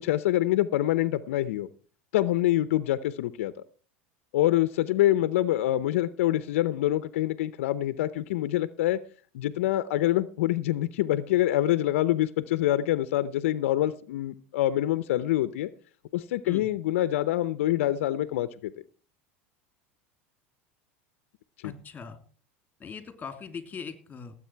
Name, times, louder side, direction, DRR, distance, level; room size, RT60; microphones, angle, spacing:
voice 1, 0.0-1.7 2.1-3.5 4.3-9.0 9.3-15.7 16.1-18.7 21.6-21.7, left 14 dB, 80° left, 14 dB, 0.7 m, -25 dB
voice 2, 21.6-22.2 22.8-24.3, left 6 dB, 20° left, 8 dB, 2.8 m, -40 dB
18.0 x 8.1 x 4.6 m, 0.42 s
supercardioid pair, 115°, 7 cm